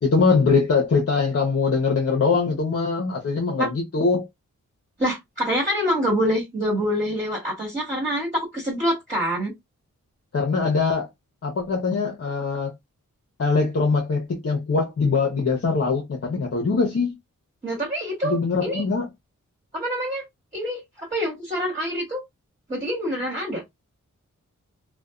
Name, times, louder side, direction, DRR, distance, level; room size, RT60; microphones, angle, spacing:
voice 1, 0.0-4.3 10.3-11.1 11.4-12.7 13.4-17.1 18.2-19.1, left 4 dB, 50° left, 0.8 m, -22 dB
voice 2, 5.0-9.5 17.6-18.8 19.7-20.2 20.5-22.2 22.7-23.6, equal, 25° right, 1.4 m, -26 dB
2.6 x 2.2 x 2.3 m
cardioid pair, 65°, 31 cm